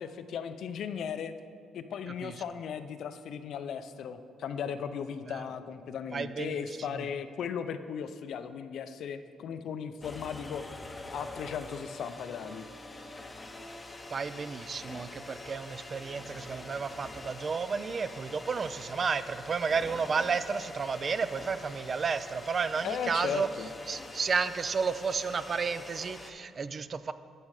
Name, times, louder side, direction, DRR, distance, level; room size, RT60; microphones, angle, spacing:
voice 1, 0.0-1.3 1.7-10.6 11.1-12.7 22.8-23.7, left 7 dB, 65° left, 10 dB, 0.4 m, -37 dB
voice 2, 6.1-6.6 14.1-23.5 23.9-27.1, right 5 dB, 40° right, 13 dB, 0.3 m, -32 dB
sound 1, 10.0-26.3, left 2 dB, 20° left, 0.7 m, -45 dB
10.5 x 5.4 x 4.8 m, 2.3 s
cardioid pair, 105°, 0 cm